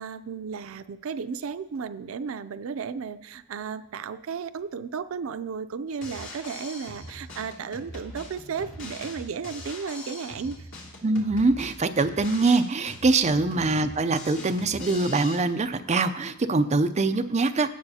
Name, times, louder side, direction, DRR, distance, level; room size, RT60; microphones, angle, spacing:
voice 1, 0.0-10.7 13.2-13.4, right 6 dB, 85° right, 13 dB, 0.4 m, -34 dB
Drum kit, 5.9-15.4, left 2 dB, 65° left, 2.5 m, -42 dB
voice 2, 11.0-17.7, right 3 dB, 35° right, 8 dB, 0.5 m, -23 dB
17.0 x 6.8 x 2.8 m, 0.83 s
head